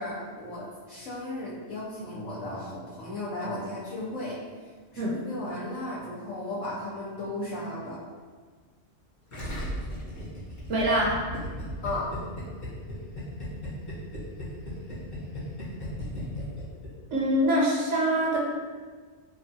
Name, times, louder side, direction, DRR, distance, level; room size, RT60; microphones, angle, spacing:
voice 1, 0.0-4.4 4.9-8.0 11.8-12.1, left 1 dB, 90° left, -8 dB, 1.0 m, -35 dB
Gurgling, 9.3-17.2, left 1 dB, 40° left, 1.0 m, -36 dB
voice 2, 10.7-11.2 17.1-18.4, right 1 dB, 70° right, -3 dB, 0.9 m, -24 dB
2.9 x 2.3 x 2.6 m, 1.5 s
omnidirectional pair, 1.3 m